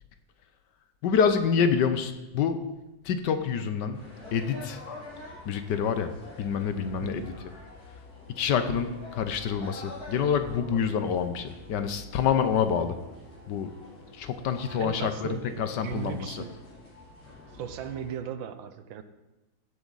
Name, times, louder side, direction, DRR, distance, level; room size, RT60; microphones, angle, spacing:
voice 1, 1.0-2.6 3.0-4.0 4.3-4.8 5.5-7.3 8.4-13.0 13.5-13.7 14.1-16.4, left 7 dB, 65° left, 9 dB, 1.3 m, -27 dB
sound 1, 3.9-18.2, left 2 dB, 50° left, 3.5 m, -47 dB
voice 2, 7.0-7.3 14.8-16.6 17.5-19.0, right 8 dB, 80° right, 11 dB, 1.5 m, -37 dB
15.5 x 8.2 x 4.0 m, 1.0 s
omnidirectional pair, 2.1 m